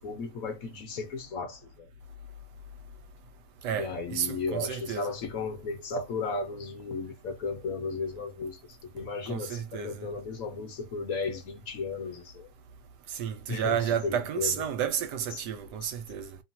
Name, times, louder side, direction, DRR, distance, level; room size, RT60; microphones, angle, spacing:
voice 1, 0.0-1.9 3.7-12.5 13.5-14.6, left 4 dB, 60° left, 1.2 m, -35 dB
voice 2, 3.6-5.1 9.3-10.1 13.1-16.4, right 9 dB, 75° right, 1.2 m, -31 dB
2.9 x 2.3 x 2.6 m
omnidirectional pair, 1.9 m